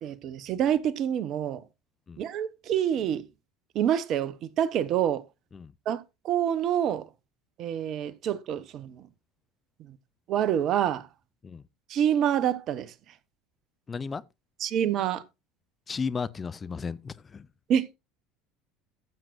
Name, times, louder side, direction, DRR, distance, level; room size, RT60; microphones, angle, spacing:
voice 1, 0.0-1.6 2.2-3.3 3.7-5.2 5.9-7.1 7.6-9.1 9.8-10.0 10.3-11.1 11.9-12.9 14.6-15.2 17.7-18.0, right 9 dB, 50° right, 1.0 m, -27 dB
voice 2, 13.9-14.2 15.9-17.5, left 5 dB, 25° left, 0.5 m, -34 dB
14.5 x 7.6 x 2.6 m
figure-of-eight pair, 65°, 0 cm